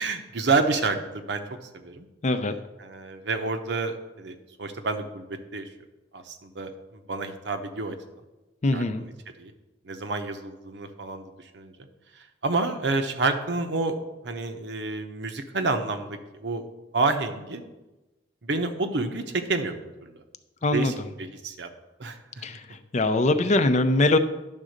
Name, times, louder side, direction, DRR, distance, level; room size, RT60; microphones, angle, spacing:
voice 1, 0.0-1.4 1.7-2.1 2.8-5.7 6.1-7.9 8.7-9.1 9.4-9.5 9.8-11.7 12.4-14.0 14.2-16.6 16.9-17.6 18.4-20.1 20.7-21.7 22.0-22.4, right 3 dB, 75° right, 7 dB, 0.8 m, -29 dB
voice 2, 2.2-2.5 8.6-9.0 20.6-20.9 22.4-22.6 22.9-24.2, left 2 dB, 40° left, 9 dB, 0.5 m, -22 dB
10.5 x 3.7 x 6.5 m, 1.1 s
head